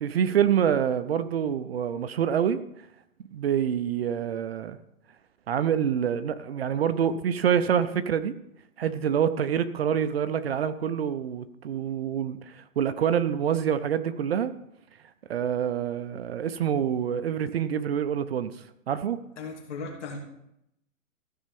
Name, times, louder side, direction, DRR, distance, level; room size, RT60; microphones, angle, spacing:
voice 1, 0.0-2.6 3.3-4.8 5.5-8.4 8.8-14.5 15.3-18.5 18.9-19.2, right 8 dB, 45° right, 0.6 m, -26 dB
voice 2, 19.4-20.2, left 4 dB, 55° left, 2.9 m, -36 dB
15.0 x 5.4 x 5.2 m
hypercardioid pair, 155°, 42 cm